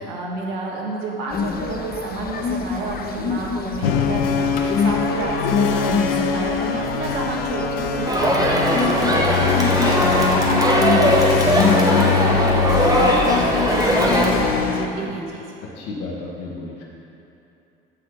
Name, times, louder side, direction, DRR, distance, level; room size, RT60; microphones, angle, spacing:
voice 1, 0.0-15.4, right 3 dB, 65° right, -2 dB, 1.8 m, -30 dB
sound 1, 1.3-14.7, left 5 dB, 30° left, 0.8 m, -27 dB
sound 2, 3.8-14.9, left 6 dB, 75° left, 0.7 m, -23 dB
Crowd, 8.1-14.3, equal, 10° right, 1.6 m, -19 dB
voice 2, 15.7-16.8, left 3 dB, 55° left, -2 dB, 1.6 m, -34 dB
15.0 x 5.7 x 3.8 m, 2.9 s
figure-of-eight pair, 60°, 30 cm